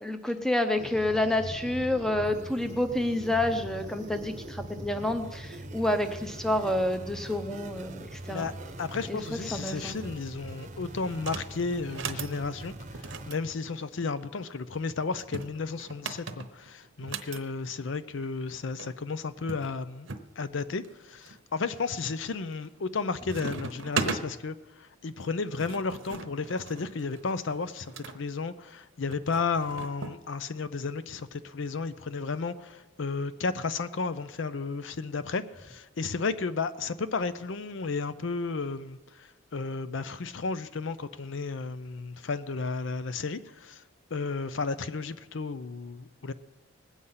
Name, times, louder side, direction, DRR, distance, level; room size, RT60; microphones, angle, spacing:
voice 1, 0.0-8.5 9.1-10.0, left 1 dB, ahead, 0.7 m, -29 dB
sound 1, 0.8-13.3, right 1 dB, 35° right, 0.8 m, -42 dB
voice 2, 8.8-20.1 20.4-43.8 44.1-46.3, left 4 dB, 65° left, 0.5 m, -33 dB
sound 2, 11.2-11.5 11.9-12.3 12.9-14.3 15.1-17.4 18.5-18.6 18.8-18.9 19.5-20.3 20.8-21.3 21.9-22.3 22.6-23.0 23.3-24.2 25.2-28.2 29.1-30.2, right 5 dB, 70° right, 0.9 m, -37 dB
19.5 x 8.2 x 5.6 m
head